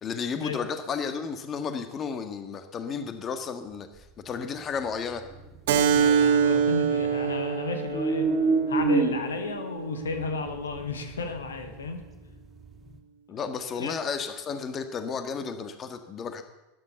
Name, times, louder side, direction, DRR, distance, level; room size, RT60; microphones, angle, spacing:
voice 1, 0.0-5.2 13.3-16.4, left 6 dB, 30° left, 8 dB, 1.6 m, -33 dB
sound 1, 4.8-7.4 7.7-13.0, right 4 dB, 20° right, 2.6 m, -30 dB
Keyboard (musical), 5.7-10.8, right 7 dB, 60° right, 1.7 m, -26 dB
voice 2, 5.9-8.3 8.7-12.0 13.8-14.0, left 4 dB, 75° left, 7 dB, 1.6 m, -33 dB
13.0 x 11.0 x 6.9 m, 1.0 s
figure-of-eight pair, 85°, 0 cm